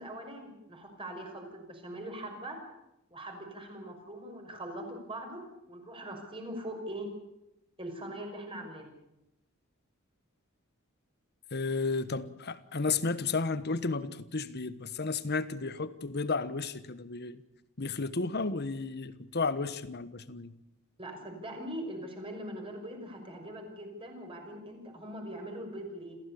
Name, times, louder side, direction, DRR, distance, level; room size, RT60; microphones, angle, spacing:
voice 1, 0.0-2.6 3.1-5.4 5.7-7.1 7.8-8.9 21.0-26.2, right 1 dB, 25° right, 5.8 m, -41 dB
voice 2, 11.5-17.4 17.8-20.5, left 4 dB, 50° left, 1.3 m, -33 dB
28.0 x 15.5 x 8.5 m
head